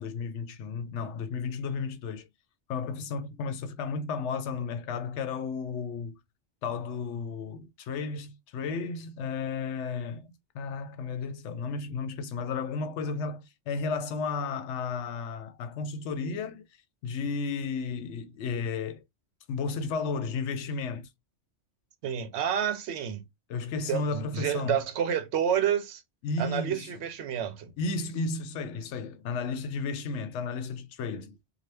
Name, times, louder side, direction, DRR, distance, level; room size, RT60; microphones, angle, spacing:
voice 1, 0.0-2.3 2.7-6.2 6.6-16.7 17.0-19.0 19.5-21.1 23.5-24.8 26.2-26.9 27.8-31.4, left 4 dB, 80° left, 0.9 m, -33 dB
voice 2, 22.0-23.2 23.9-26.0 26.4-27.7, right 9 dB, 70° right, 0.9 m, -29 dB
2.8 x 2.2 x 3.2 m
omnidirectional pair, 1.2 m